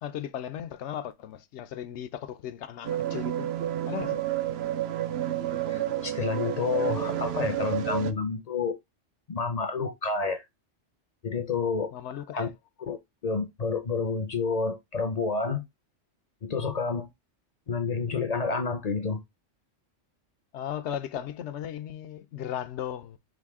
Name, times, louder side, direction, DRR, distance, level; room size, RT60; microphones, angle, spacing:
voice 1, 0.0-3.5 3.9-4.2 11.9-12.5 20.5-23.2, left 10 dB, 75° left, 0.9 m, -36 dB
sound 1, 2.8-8.1, right 11 dB, 65° right, 0.8 m, -30 dB
voice 2, 5.7-8.8 9.3-10.4 11.2-11.9 12.3-12.5 12.8-13.0 13.2-15.6 16.4-17.1 17.7-19.2, left 4 dB, 45° left, 0.5 m, -29 dB
5.0 x 2.6 x 3.5 m
omnidirectional pair, 1.2 m